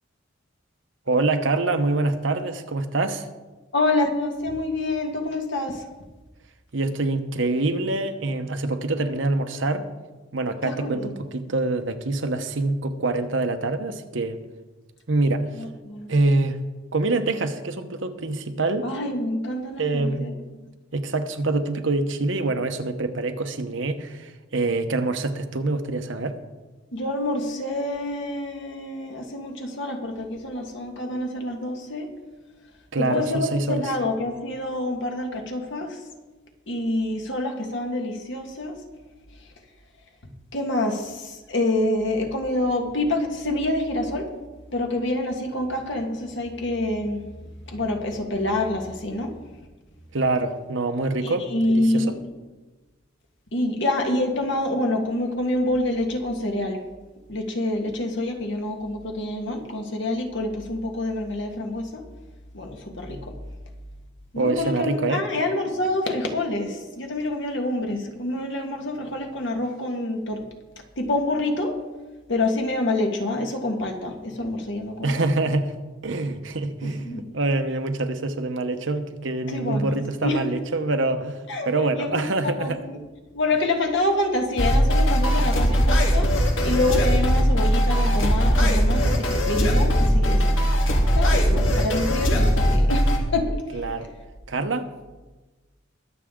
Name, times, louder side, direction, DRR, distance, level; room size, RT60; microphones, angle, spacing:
voice 1, 1.1-3.3 6.7-9.9 10.3-14.4 15.1-15.6 16.1-16.6 16.9-18.9 19.8-20.2 20.9-26.4 32.9-33.8 50.1-52.2 64.4-65.3 75.0-75.7 76.0-82.8 93.7-94.1 94.5-94.9, right 2 dB, 70° right, 7 dB, 1.0 m, -25 dB
voice 2, 3.7-5.8 10.6-11.1 15.5-16.1 18.8-20.3 26.9-32.1 33.0-36.0 36.7-38.8 40.2-44.3 44.7-47.3 47.7-49.3 51.2-52.2 53.5-56.8 57.3-62.0 62.5-63.3 64.3-70.4 71.0-71.7 72.3-75.2 76.8-77.2 79.5-80.4 81.5-81.7 81.9-83.0 83.3-86.3 86.6-90.6 91.1-93.8, left 1 dB, 65° left, 3 dB, 1.7 m, -27 dB
sound 1, 84.6-93.2, equal, 85° left, 1.8 m, -20 dB
22.0 x 7.4 x 3.8 m, 1.2 s
head